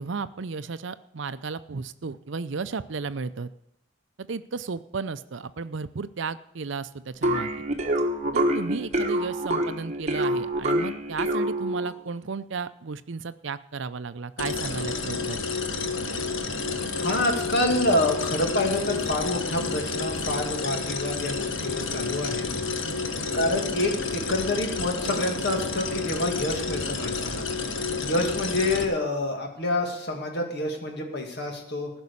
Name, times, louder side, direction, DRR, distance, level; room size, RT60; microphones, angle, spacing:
voice 1, 0.0-3.5 4.3-7.5 8.3-15.4 23.2-23.4, right 4 dB, 65° right, 13 dB, 0.6 m, -34 dB
sound 1, 7.2-12.0, right 1 dB, 35° right, 1.3 m, -26 dB
sound 2, 14.4-28.8, left 4 dB, 70° left, 1.3 m, -30 dB
voice 2, 16.9-22.5 23.3-27.5 28.0-31.9, left 1 dB, 55° left, 2 dB, 2.3 m, -27 dB
15.0 x 6.2 x 8.4 m, 0.77 s
head